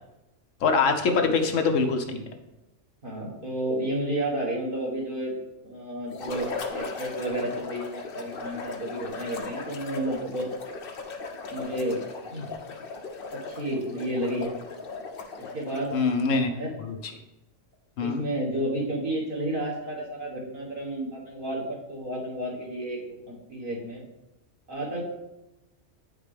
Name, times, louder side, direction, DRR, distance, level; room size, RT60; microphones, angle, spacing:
voice 1, 0.6-2.0 15.9-16.5 16.8-17.0 18.0-18.2, left 4 dB, 80° left, 4 dB, 1.2 m, -23 dB
voice 2, 3.0-5.4 5.6-10.5 11.5-12.0 12.3-12.5 13.3-14.6 15.5-16.0 16.3-16.7 18.0-24.0 24.7-25.0, right 1 dB, 45° right, -4 dB, 1.8 m, -31 dB
sound 1, 6.1-16.0, left 4 dB, 55° left, 0.8 m, -37 dB
9.0 x 5.2 x 3.4 m, 0.98 s
omnidirectional pair, 1.3 m